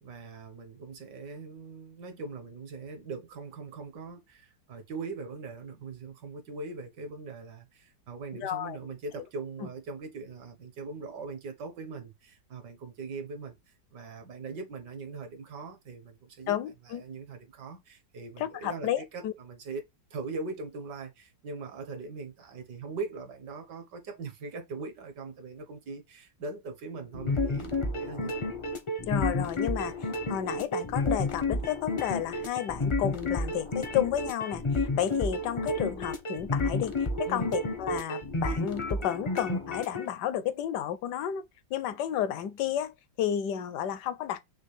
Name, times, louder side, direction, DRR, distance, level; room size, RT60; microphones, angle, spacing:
voice 1, 0.0-13.6 13.9-16.6 16.9-19.8 20.1-28.5 37.3-37.6, right 4 dB, 75° right, 1.8 m, -41 dB
voice 2, 8.4-8.8 16.5-17.0 18.4-19.3 29.0-41.5 41.7-44.4, left 10 dB, 75° left, 1.2 m, -32 dB
sound 1, 27.1-40.0, left 2 dB, 35° left, 0.4 m, -31 dB
6.2 x 2.3 x 3.2 m
omnidirectional pair, 1.9 m